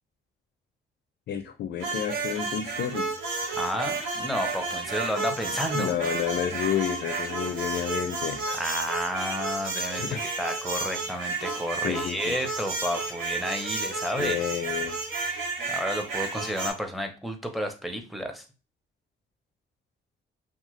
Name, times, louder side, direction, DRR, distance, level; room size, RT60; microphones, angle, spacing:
voice 1, 1.3-3.1 5.7-8.4 10.0-10.3 11.8-12.4 14.2-15.0, left 9 dB, 60° left, 0.4 m, -30 dB
sound 1, 1.8-16.7, right 3 dB, 85° right, 0.8 m, -32 dB
voice 2, 3.5-6.0 8.5-14.4 15.7-18.5, equal, ahead, 0.6 m, -31 dB
2.8 x 2.2 x 2.9 m
cardioid pair, 90°, 20 cm